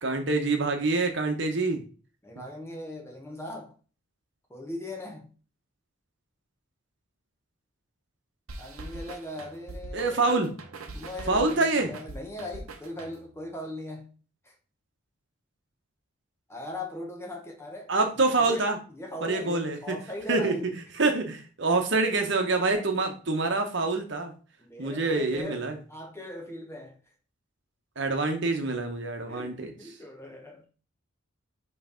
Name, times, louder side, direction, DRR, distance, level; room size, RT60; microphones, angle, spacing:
voice 1, 0.0-1.8 9.9-10.5 11.3-11.9 17.9-18.8 19.2-19.9 20.3-20.5 21.0-24.3 24.8-25.7 28.0-29.7, right 3 dB, 55° right, 1.1 m, -26 dB
voice 2, 2.2-3.7 4.5-5.3 8.6-10.4 10.9-14.2 14.4-14.5 16.5-17.9 18.4-20.7 22.7-22.9 24.6-27.0 29.3-30.7, left 1 dB, 10° left, 1.1 m, -39 dB
sound 1, 8.5-13.4, right 2 dB, 90° right, 0.9 m, -42 dB
5.7 x 3.3 x 5.1 m
head